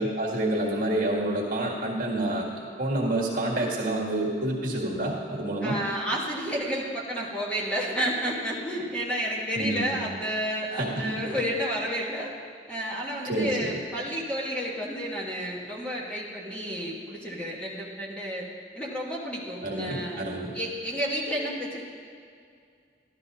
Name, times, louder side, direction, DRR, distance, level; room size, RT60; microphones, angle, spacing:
voice 1, 0.0-2.5 2.8-5.8 9.5-10.0 10.7-11.3 13.3-13.7 19.6-20.5, right 1 dB, 50° right, -2 dB, 1.7 m, -28 dB
voice 2, 5.6-12.3 12.7-18.4 18.7-20.2 20.5-21.8, equal, 5° left, -5 dB, 1.3 m, -31 dB
12.5 x 12.0 x 2.8 m, 2.3 s
head